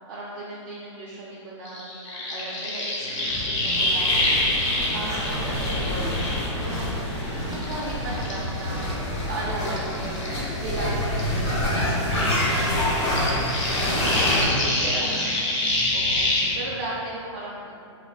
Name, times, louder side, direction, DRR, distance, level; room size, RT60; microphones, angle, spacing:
voice 1, 0.1-4.4 4.9-7.1 7.5-8.9 9.2-13.5 13.9-14.6 15.0-15.1 15.9-16.3 16.5-17.7, right 2 dB, 45° right, -7 dB, 0.4 m, -36 dB
sound 1, 1.6-7.2 7.5-10.9 11.1-16.5, left 2 dB, 80° left, 0.9 m, -27 dB
sound 2, 3.0-16.4, left 1 dB, ahead, 1.1 m, -37 dB
sound 3, 3.7-14.5, left 1 dB, 60° left, 1.1 m, -27 dB
voice 2, 4.2-4.9 13.7-15.2 15.5-15.8, right 1 dB, 25° right, -11 dB, 1.1 m, -36 dB
3.8 x 2.1 x 2.3 m, 2.6 s
hypercardioid pair, 180°, 16 cm